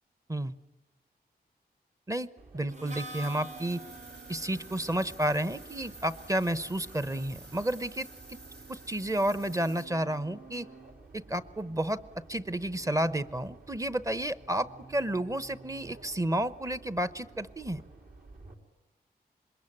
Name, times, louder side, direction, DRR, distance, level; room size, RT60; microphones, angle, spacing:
voice 1, 2.1-3.8 4.3-8.4 8.7-10.7 11.1-12.0 12.3-17.8, right 1 dB, 20° right, 15 dB, 0.9 m, -31 dB
sound 1, 2.4-18.5, right 3 dB, 60° right, 4.1 m, -52 dB
Harmonica, 2.7-8.4, right 1 dB, 45° right, 1.1 m, -49 dB
sound 2, 2.9-9.8, right 2 dB, 85° right, 7.8 m, -51 dB
26.5 x 22.0 x 10.0 m, 1.0 s
wide cardioid pair, 110°, 17 cm